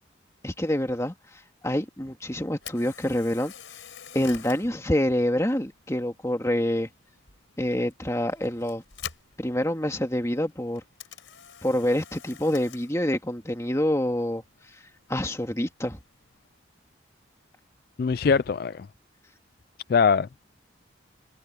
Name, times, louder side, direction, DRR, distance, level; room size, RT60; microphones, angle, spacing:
voice 1, 0.4-3.5 4.1-6.9 7.6-8.8 9.4-10.8 11.6-14.8 15.1-16.0, left 1 dB, 15° left, 2.0 m, -27 dB
Camera, 2.5-16.6, left 9 dB, 90° left, 4.9 m, -48 dB
voice 2, 18.0-18.9 19.9-20.4, left 5 dB, 50° left, 0.3 m, -22 dB
head